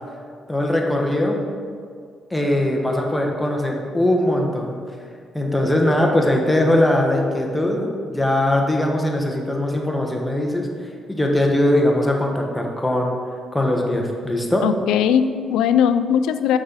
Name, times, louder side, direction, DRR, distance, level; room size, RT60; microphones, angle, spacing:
voice 1, 0.5-1.4 2.3-4.8 5.3-10.7 11.1-13.2 13.5-14.7, left 1 dB, 10° left, 1 dB, 1.0 m, -20 dB
voice 2, 14.6-16.6, left 8 dB, 90° left, 11 dB, 0.3 m, -19 dB
6.2 x 6.0 x 3.9 m, 2.1 s
cardioid pair, 90°, 0 cm